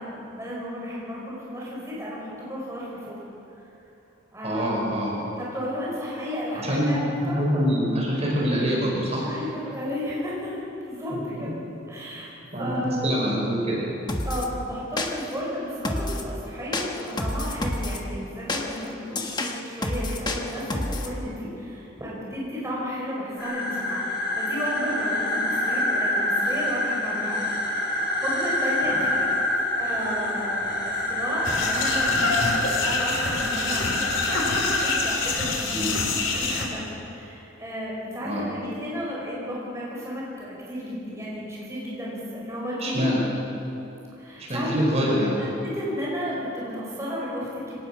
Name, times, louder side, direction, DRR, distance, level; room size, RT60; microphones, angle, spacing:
voice 1, 0.0-3.2 4.3-7.4 9.2-11.5 11.9-12.3 12.6-13.2 14.2-24.0 24.4-29.3 29.8-35.7 36.4-43.1 44.2-44.7 45.4-47.7, equal, 15° right, -6 dB, 5.3 m, -33 dB
voice 2, 4.4-5.1 6.6-6.9 7.2-9.2 11.1-11.6 12.5-13.8 28.9-29.0 35.7-35.9 38.3-38.4 42.8-43.2 44.4-45.4, equal, 35° right, -4 dB, 5.5 m, -25 dB
sound 1, 14.1-14.5 15.0-15.4 15.8-16.3 16.7-18.0 18.5-21.1, left 1 dB, 20° left, 1.3 m, -29 dB
sound 2, 23.4-35.0, left 1 dB, 50° left, 4.3 m, -26 dB
sound 3, 31.4-36.7, left 4 dB, 80° left, 3.5 m, -27 dB
25.0 x 18.5 x 6.1 m, 2.9 s
head